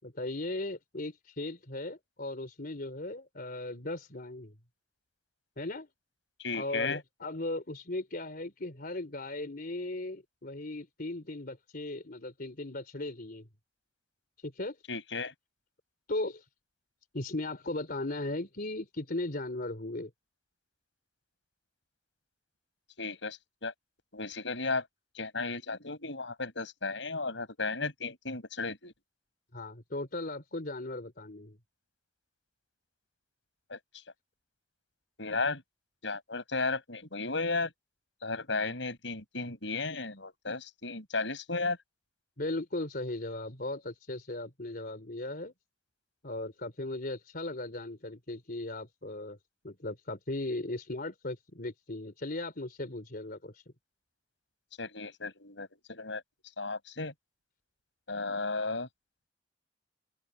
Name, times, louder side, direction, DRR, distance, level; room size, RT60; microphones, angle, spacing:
voice 1, 0.0-4.6 5.6-5.9 6.5-13.5 14.4-14.8 16.1-16.4 17.1-20.1 29.5-31.6 42.4-45.5 46.2-49.4 49.6-53.6, left 2 dB, 50° left, 3.9 m, -37 dB
voice 2, 6.4-7.0 14.9-15.3 23.0-23.7 24.1-24.9 25.1-28.9 33.7-33.8 35.2-35.6 36.0-37.7 38.2-41.8 54.8-56.2 56.6-57.1 58.1-58.9, left 3 dB, 75° left, 6.7 m, -34 dB
open air
head